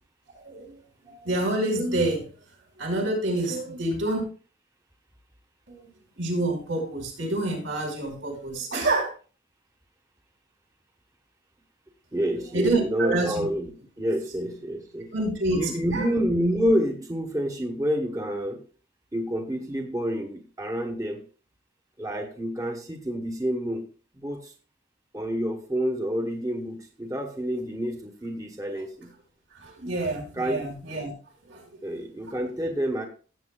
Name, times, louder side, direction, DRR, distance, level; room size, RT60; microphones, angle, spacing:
voice 1, 0.4-0.8 1.0-2.2 2.8-4.2 5.7-5.8 6.2-9.1 12.5-13.4 15.1-16.1 29.5-31.1 31.5-31.6, right 2 dB, 85° right, 0 dB, 5.1 m, -27 dB
voice 2, 12.1-13.7 14.0-15.1 15.6-18.6 19.1-21.2 22.0-23.9 24.1-24.5 25.1-29.1 30.3-30.7 31.8-33.1, equal, 15° right, 3 dB, 1.1 m, -28 dB
16.5 x 8.1 x 2.3 m, 0.37 s
head